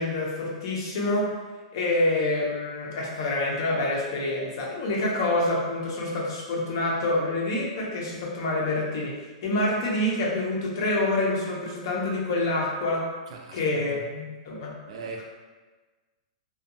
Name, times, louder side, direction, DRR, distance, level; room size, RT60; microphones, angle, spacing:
voice 1, 0.0-1.4 1.7-9.1 9.4-13.1 13.5-14.8, left 2 dB, 35° left, -3 dB, 0.5 m, -27 dB
voice 2, 13.3-13.6 13.9-14.1 14.9-15.2, right 4 dB, 55° right, 1 dB, 0.4 m, -39 dB
2.6 x 2.2 x 2.6 m, 1.3 s
supercardioid pair, 180°, 4 cm